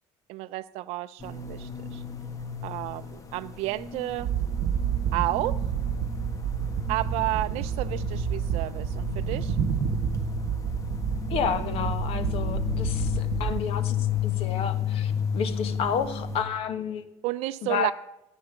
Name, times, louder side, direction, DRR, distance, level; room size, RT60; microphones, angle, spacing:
voice 1, 0.3-2.0 2.6-4.3 5.1-5.7 6.9-9.6 17.2-17.9, right 17 dB, 85° right, 0.4 m, -31 dB
sound 1, 1.2-16.4, left 7 dB, 30° left, 1.5 m, -33 dB
sound 2, 4.2-13.6, right 9 dB, 65° right, 1.0 m, -29 dB
voice 2, 11.3-17.1 17.6-17.9, left 7 dB, 65° left, 1.4 m, -31 dB
15.0 x 9.1 x 6.9 m
cardioid pair, 145°, 11 cm